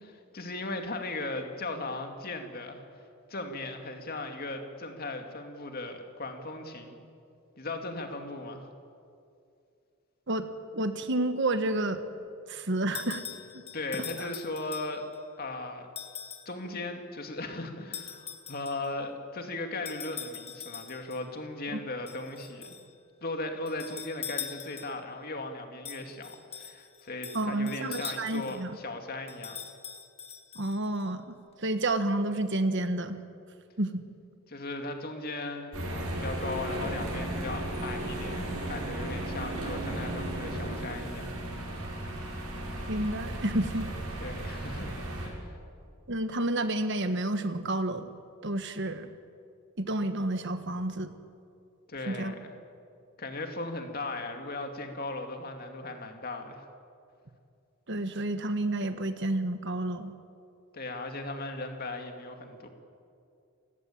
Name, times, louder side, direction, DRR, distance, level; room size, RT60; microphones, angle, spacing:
voice 1, 0.0-2.8 3.3-7.0 7.6-8.7 13.7-15.0 15.4-15.9 16.5-22.7 23.2-29.6 34.5-41.3 44.2-44.9 45.2-45.6 51.9-52.6 53.2-56.7 60.7-62.7, left 2 dB, 45° left, 5 dB, 2.5 m, -37 dB
voice 2, 10.7-12.0 12.5-13.2 14.2-14.3 21.7-21.8 27.3-28.8 30.5-31.2 31.6-33.2 33.8-34.1 42.9-43.9 46.1-48.1 48.4-49.1 49.8-51.1 52.1-52.3 57.9-60.1, right 2 dB, 55° right, 9 dB, 1.4 m, -30 dB
sound 1, 12.9-15.2 16.0-16.5 17.9-18.9 19.8-21.2 22.1-22.9 23.7-25.1 25.8-28.6 29.3-31.0, left 8 dB, 30° left, 1.5 m, -42 dB
sound 2, 35.7-45.3, right 1 dB, 90° right, 6.3 m, -35 dB
29.0 x 16.0 x 8.8 m, 2.4 s
head